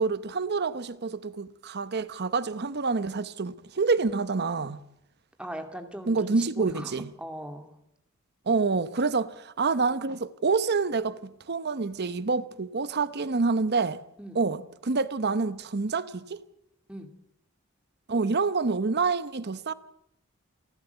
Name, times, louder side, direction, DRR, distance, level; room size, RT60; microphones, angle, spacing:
voice 1, 0.0-4.8 6.1-7.1 8.5-14.0 14.3-16.4 18.1-19.7, right 4 dB, 50° right, 0.8 m, -27 dB
voice 2, 5.4-7.7 14.2-14.4 16.9-17.1, equal, 5° right, 2.4 m, -39 dB
29.0 x 12.0 x 7.9 m
head